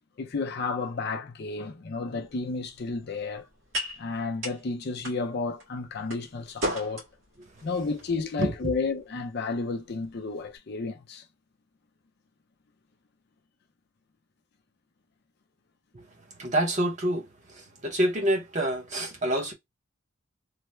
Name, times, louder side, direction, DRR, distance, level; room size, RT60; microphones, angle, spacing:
voice 1, 0.2-3.5 4.0-7.0 7.6-11.3, left 4 dB, 50° left, 0.5 m, -32 dB
sound 1, 2.2-10.6, equal, 70° right, 1.7 m, -39 dB
voice 2, 8.4-8.7 15.9-19.5, right 1 dB, 35° right, 0.8 m, -28 dB
3.3 x 2.1 x 3.0 m
head